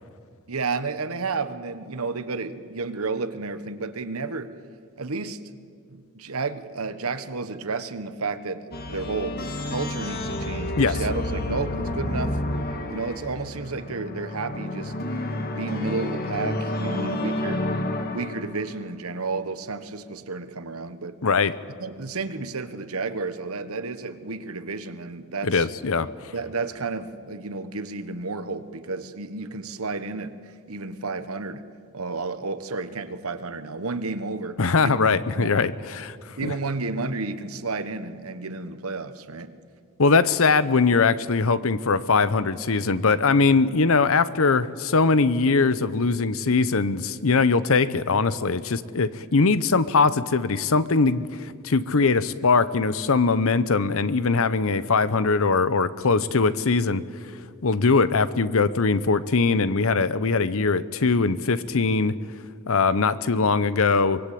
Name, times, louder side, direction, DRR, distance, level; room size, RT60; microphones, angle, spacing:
voice 1, 0.5-4.5 5.0-5.4 5.9-12.4 12.9-14.9 15.5-17.7 18.1-21.2 21.8-25.7 26.3-31.7 31.9-35.6 36.4-39.5, right 3 dB, 70° right, 11 dB, 1.2 m, -31 dB
sound 1, 8.7-18.8, left 1 dB, 45° left, 1.7 m, -30 dB
voice 2, 21.2-21.5 25.4-26.1 34.6-36.5 40.0-57.0 57.6-62.2 62.7-64.2, left 4 dB, 65° left, 15 dB, 0.8 m, -21 dB
24.0 x 22.0 x 8.5 m, 2.2 s
head